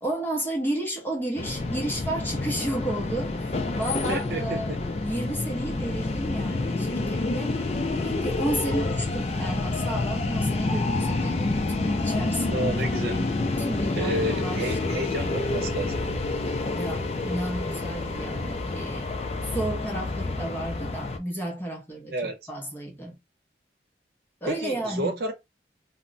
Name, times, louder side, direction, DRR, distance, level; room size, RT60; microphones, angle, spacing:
voice 1, 0.0-4.7 5.0-7.6 8.0-15.2 16.7-19.1 19.4-23.2 24.4-25.1, right 1 dB, 10° left, 0.7 m, -32 dB
sound 1, 1.4-21.2, left 2 dB, 35° left, 0.4 m, -28 dB
voice 2, 4.1-4.8 12.5-13.1 14.0-16.0 22.1-22.4 24.4-25.3, right 1 dB, 55° right, 0.7 m, -30 dB
2.2 x 2.0 x 3.8 m
head